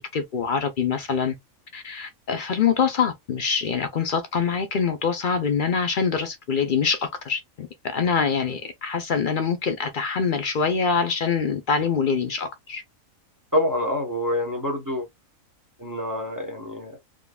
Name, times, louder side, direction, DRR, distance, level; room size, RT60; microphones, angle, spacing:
voice 1, 0.0-1.3 1.7-12.8, left 6 dB, 55° left, 0.6 m, -24 dB
voice 2, 13.5-15.1 15.8-16.9, left 1 dB, 15° right, 0.8 m, -26 dB
3.7 x 2.9 x 2.2 m
omnidirectional pair, 1.5 m